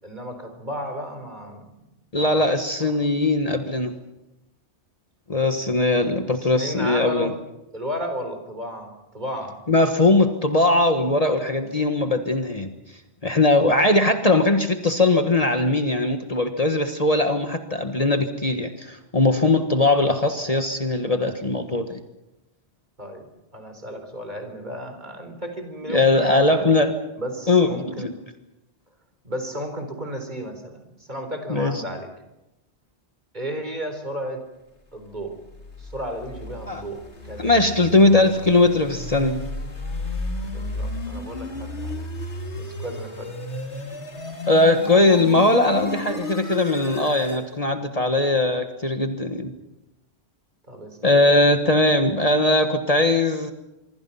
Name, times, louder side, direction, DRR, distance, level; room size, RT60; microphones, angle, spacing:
voice 1, 0.0-1.7 2.2-2.5 6.3-7.3 7.7-9.6 23.0-23.3 23.5-26.8 27.2-28.1 29.2-32.1 33.3-34.4 34.9-35.3 35.8-37.5 40.4-42.1 42.6-43.3 50.7-51.0, equal, 40° right, 6 dB, 4.3 m, -33 dB
voice 2, 2.1-4.0 5.3-7.3 9.7-12.7 13.2-22.0 25.9-26.9 27.5-27.7 28.0-28.1 31.5-31.8 36.7-36.8 37.4-39.4 44.5-49.5 51.0-53.5, left 2 dB, 35° left, 6 dB, 1.6 m, -20 dB
sound 1, 35.3-47.5, left 1 dB, 90° left, 3.2 m, -33 dB
25.5 x 24.0 x 5.8 m, 0.95 s
omnidirectional pair, 1.1 m